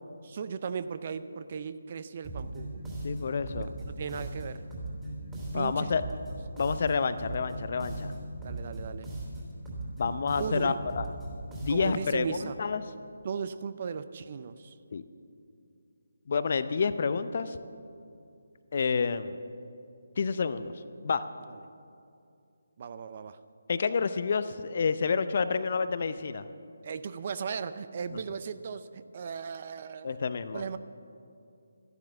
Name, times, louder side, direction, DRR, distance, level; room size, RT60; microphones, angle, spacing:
voice 1, 0.2-2.8 3.8-4.6 5.5-5.9 8.4-9.1 10.4-10.8 11.7-12.6 13.2-14.7 22.8-23.4 26.8-30.8, right 6 dB, 40° right, 13 dB, 0.5 m, -37 dB
sound 1, 2.2-12.1, right 1 dB, 10° right, 3.0 m, -38 dB
voice 2, 3.0-3.7 5.5-6.0 6.6-8.1 9.9-11.1 11.6-12.8 14.9-15.0 16.3-17.6 18.7-19.4 20.2-20.7 21.0-21.2 23.7-26.4 28.1-28.2 30.0-30.6, left 5 dB, 45° left, 12 dB, 0.6 m, -29 dB
13.0 x 12.0 x 7.3 m, 2.5 s
figure-of-eight pair, 150°, 0 cm